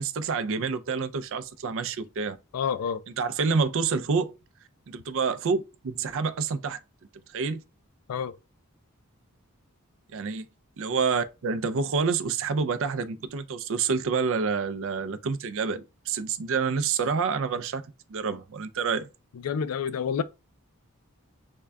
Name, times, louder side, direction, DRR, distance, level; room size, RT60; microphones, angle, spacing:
voice 1, 0.0-2.4 3.2-4.3 4.9-6.8 7.3-7.6 10.1-10.5 10.8-19.1, right 5 dB, 65° right, 0.4 m, -28 dB
voice 2, 2.5-3.0 8.1-8.4 19.4-20.2, left 7 dB, 85° left, 0.4 m, -28 dB
3.6 x 2.2 x 3.4 m
head